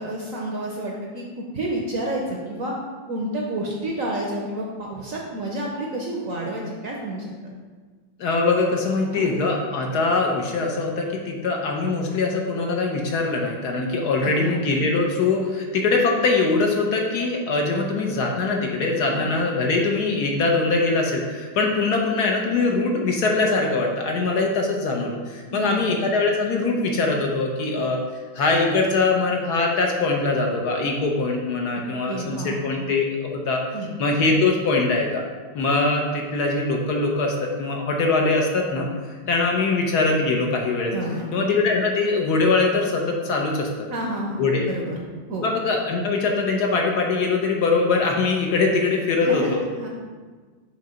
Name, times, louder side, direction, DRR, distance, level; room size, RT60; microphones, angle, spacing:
voice 1, 0.0-2.7 3.1-7.3 9.1-9.3 14.2-14.5 19.1-19.2 25.5-25.9 32.1-32.8 33.7-34.0 40.9-41.3 43.9-45.0 45.3-45.5 49.2-49.9, right 1 dB, 60° right, -1 dB, 0.9 m, -30 dB
voice 2, 8.2-28.0 28.3-33.6 34.0-35.2 35.5-40.9 41.3-43.7 44.4-44.7 45.4-49.6, left 3 dB, 65° left, 1 dB, 1.2 m, -22 dB
6.6 x 3.3 x 5.0 m, 1.4 s
omnidirectional pair, 2.1 m